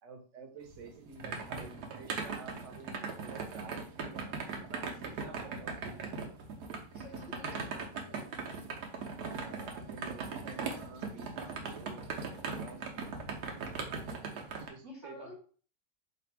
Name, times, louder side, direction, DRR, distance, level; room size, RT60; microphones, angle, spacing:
voice 1, 0.0-5.8 9.2-12.1 12.5-13.0 14.3-15.3, right 4 dB, 60° right, 4 dB, 1.1 m, -50 dB
sound 1, 0.7-14.7, right 4 dB, 80° right, 1.3 m, -39 dB
voice 2, 6.9-8.3 14.9-15.3, left 2 dB, 35° left, -4 dB, 1.2 m, -50 dB
3.3 x 2.5 x 4.5 m, 0.41 s
omnidirectional pair, 1.6 m